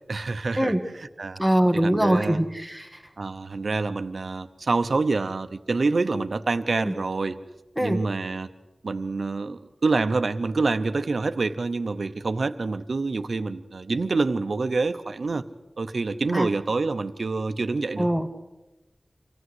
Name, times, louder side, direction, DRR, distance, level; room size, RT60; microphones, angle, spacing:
voice 1, 0.1-1.4 1.7-2.4 3.2-7.4 7.8-8.5 8.8-15.4 15.8-18.1, right 3 dB, 75° right, 10 dB, 0.8 m, -27 dB
voice 2, 1.4-3.0 6.8-6.9 7.8-8.0 16.3-16.5 18.0-18.3, right 1 dB, ahead, 4 dB, 1.6 m, -23 dB
25.5 x 15.5 x 7.9 m, 1.1 s
wide cardioid pair, 75°, 0 cm